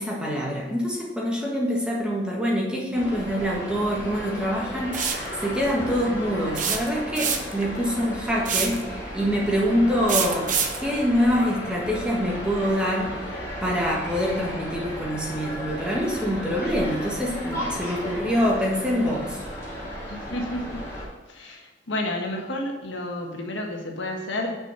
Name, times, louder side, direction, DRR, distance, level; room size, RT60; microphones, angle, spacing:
voice 1, 0.0-10.5 10.8-13.2 13.6-19.4, equal, 5° right, -3 dB, 1.5 m, -25 dB
sound 1, 2.9-21.0, equal, 15° left, 2.4 m, -34 dB
sound 2, 4.9-5.3 6.6-7.6 8.4-8.8 10.1-10.8, right 7 dB, 45° right, 0.9 m, -25 dB
voice 2, 20.1-20.8 21.3-24.5, left 1 dB, 90° left, 1 dB, 1.6 m, -31 dB
6.3 x 6.3 x 6.9 m, 1.1 s
head